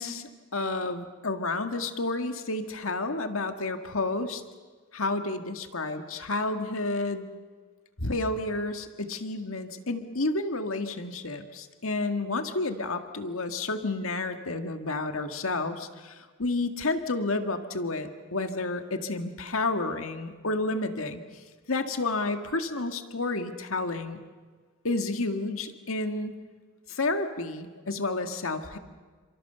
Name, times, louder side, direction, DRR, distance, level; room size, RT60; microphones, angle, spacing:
voice 1, 0.0-4.4 4.9-7.3 8.0-24.2 24.8-26.4 26.9-28.8, left 2 dB, 85° left, 7 dB, 1.8 m, -30 dB
30.0 x 26.5 x 6.8 m, 1.5 s
head